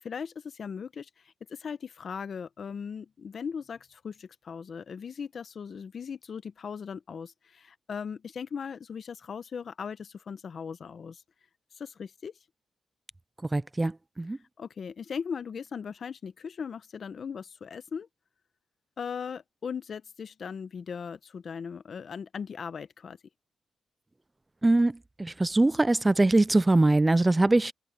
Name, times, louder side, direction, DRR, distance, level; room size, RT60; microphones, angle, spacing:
voice 1, 0.0-11.2 11.7-12.3 14.6-18.1 19.0-23.2, left 6 dB, 60° left, 1.0 m, -38 dB
voice 2, 13.5-14.4 24.6-27.7, right 2 dB, 20° right, 0.4 m, -23 dB
cardioid pair, 85°, 0 cm